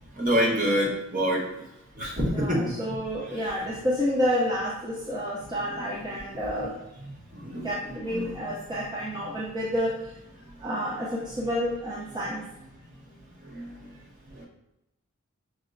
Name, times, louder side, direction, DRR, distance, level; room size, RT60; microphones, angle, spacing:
voice 1, 0.2-1.5 2.0-2.6 5.7-6.2 7.3-8.3 13.5-13.7, equal, 40° right, -3 dB, 1.0 m, -27 dB
voice 2, 2.3-6.7 7.6-10.1 10.6-12.4, equal, 20° right, -6 dB, 0.5 m, -29 dB
5.3 x 2.9 x 2.5 m, 0.87 s
head